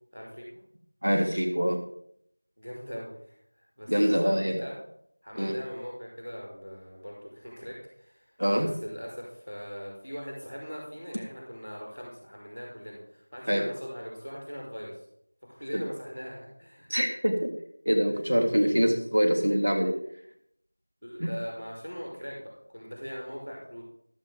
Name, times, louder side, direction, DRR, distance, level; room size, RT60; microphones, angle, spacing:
voice 1, 0.1-0.6 2.6-4.7 5.2-15.0 15.5-16.9 18.5-18.7 21.0-23.8, equal, ahead, -27 dB, 3.2 m, -41 dB
voice 2, 1.0-1.8 3.9-4.6 5.4-5.5 8.4-8.7 13.5-13.6 15.7-15.8 16.9-17.5 17.9-20.0 21.2-21.4, equal, 55° right, 2 dB, 1.7 m, -25 dB
14.0 x 7.6 x 5.1 m, 0.71 s
figure-of-eight pair, 175°, 0 cm